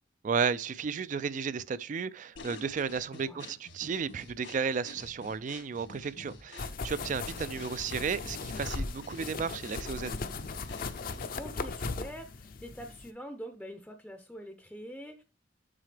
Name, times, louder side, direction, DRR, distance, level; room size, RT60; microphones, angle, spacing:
voice 1, 0.2-10.2, right 6 dB, 40° right, 0.4 m, -33 dB
sound 1, 2.4-11.5, left 3 dB, 85° left, 1.7 m, -50 dB
voice 2, 3.2-3.5 7.3-7.6 9.4-9.6 11.4-15.2, equal, 5° left, 0.6 m, -45 dB
sound 2, 6.6-13.1, left 3 dB, 50° left, 0.6 m, -38 dB
7.5 x 5.7 x 3.3 m
head